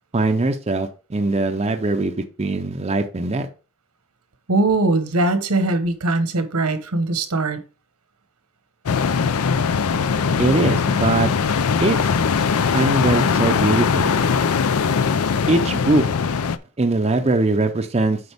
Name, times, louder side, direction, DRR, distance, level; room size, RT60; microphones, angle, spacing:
voice 1, 0.1-3.5 10.4-11.3 11.8-12.0 12.7-14.2 15.5-16.0 16.8-18.2, right 2 dB, 30° right, 6 dB, 0.5 m, -21 dB
voice 2, 4.5-7.6, right 2 dB, 85° right, 9 dB, 1.2 m, -21 dB
sound 1, 8.9-16.6, left 5 dB, 75° left, 0.5 m, -20 dB
7.9 x 5.2 x 3.5 m, 0.35 s
head